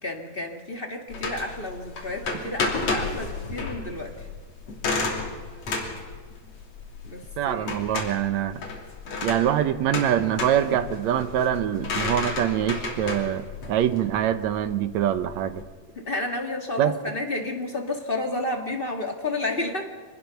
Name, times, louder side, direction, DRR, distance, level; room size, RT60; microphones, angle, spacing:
voice 1, 0.0-4.1 7.0-7.7 15.9-19.9, left 2 dB, 25° left, 3 dB, 1.5 m, -31 dB
sound 1, 1.1-15.6, left 3 dB, 60° left, 4.1 m, -32 dB
voice 2, 7.4-8.6 9.2-15.6 16.8-17.0, right 10 dB, 75° right, 11 dB, 2.0 m, -24 dB
25.0 x 19.5 x 5.8 m, 1.5 s
omnidirectional pair, 3.4 m